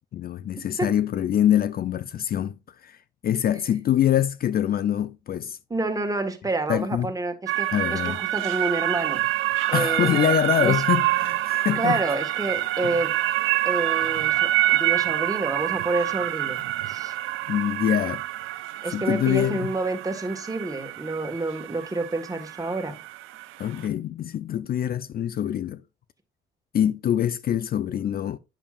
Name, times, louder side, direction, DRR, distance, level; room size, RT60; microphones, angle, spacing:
voice 1, 0.1-3.0 3.2-5.6 6.7-7.1 7.7-8.2 9.7-12.0 17.5-18.2 18.9-19.7 23.6-25.8 26.7-28.4, left 10 dB, 50° left, 0.4 m, -24 dB
voice 2, 5.7-9.2 9.7-10.3 10.6-10.8 11.7-13.1 13.6-17.1 18.8-23.0, right 2 dB, 15° right, 1.6 m, -28 dB
sound 1, 7.5-23.9, right 15 dB, 85° right, 0.5 m, -27 dB
9.0 x 6.9 x 2.5 m
cardioid pair, 90°, 20 cm